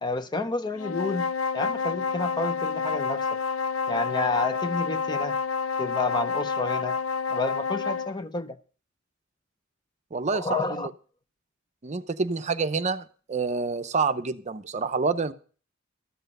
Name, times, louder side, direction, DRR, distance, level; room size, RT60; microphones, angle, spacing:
voice 1, 0.0-3.4 3.9-5.4 5.8-7.0 7.3-8.6 10.3-10.9, left 3 dB, 20° left, 0.6 m, -30 dB
sound 1, 0.7-8.2, left 5 dB, 85° left, 0.5 m, -29 dB
voice 2, 10.1-10.9 11.8-15.3, right 4 dB, 35° right, 0.6 m, -28 dB
13.0 x 8.0 x 5.3 m
head